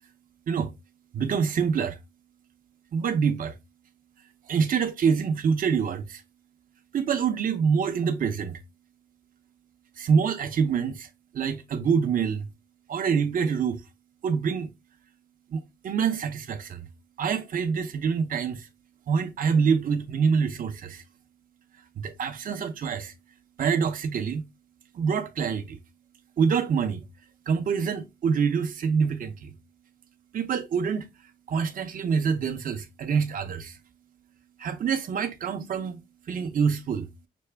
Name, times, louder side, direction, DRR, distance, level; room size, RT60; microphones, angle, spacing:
voice 1, 1.1-2.0 2.9-3.5 4.5-6.2 6.9-8.6 10.0-11.1 11.3-12.5 12.9-13.8 14.2-14.7 15.5-16.9 17.2-18.7 19.1-21.0 22.0-23.1 23.6-24.4 24.9-25.8 26.4-27.0 27.5-29.5 30.3-31.1 31.5-33.8 34.6-36.0 36.3-37.1, right 6 dB, 60° right, 0.7 m, -26 dB
6.0 x 2.2 x 3.3 m
cardioid pair, 100°, 16 cm